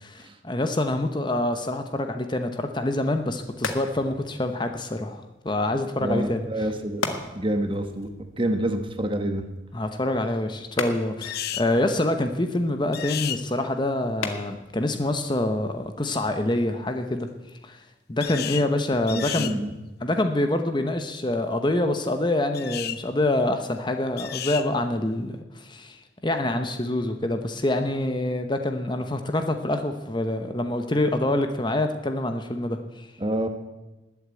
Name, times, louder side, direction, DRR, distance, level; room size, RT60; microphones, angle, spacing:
voice 1, 0.0-6.5 9.7-17.3 17.6-17.8 18.1-19.6 20.0-33.1, left 1 dB, 25° left, 7 dB, 0.9 m, -26 dB
sound 1, 3.0-16.5, left 3 dB, 90° left, 1.7 m, -39 dB
voice 2, 6.0-8.1 8.4-9.4 19.1-19.7 33.2-33.5, right 1 dB, 25° right, 7 dB, 1.3 m, -27 dB
sound 2, 11.2-11.7 12.9-13.4 18.2-18.7 19.1-19.6 22.5-23.0 24.2-24.7, left 11 dB, 50° left, 0.6 m, -32 dB
19.5 x 8.4 x 8.2 m, 1.1 s
head